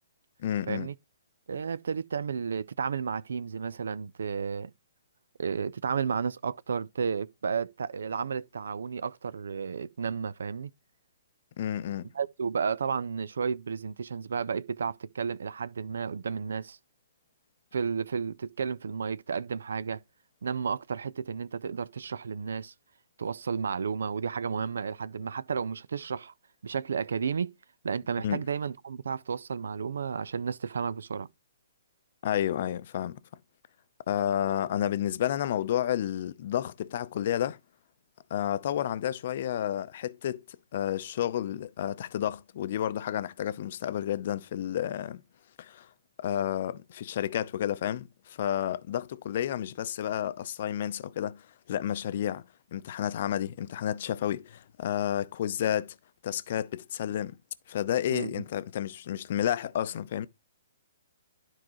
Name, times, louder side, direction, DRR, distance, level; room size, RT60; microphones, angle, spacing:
voice 1, 0.4-0.9 11.6-12.1 28.2-28.4 32.2-33.2 34.1-37.6 38.3-40.4 40.7-45.2 45.6-45.9 46.2-52.4 52.7-55.9 56.2-57.4 57.7-60.3, left 11 dB, 50° left, 0.6 m, -31 dB
voice 2, 1.5-4.7 5.4-10.7 12.1-16.8 17.7-20.0 20.4-22.7 23.2-26.3 26.6-27.5 27.8-31.3 58.1-58.4, right 6 dB, 70° right, 0.4 m, -32 dB
12.0 x 4.7 x 3.0 m
figure-of-eight pair, 125°, 0 cm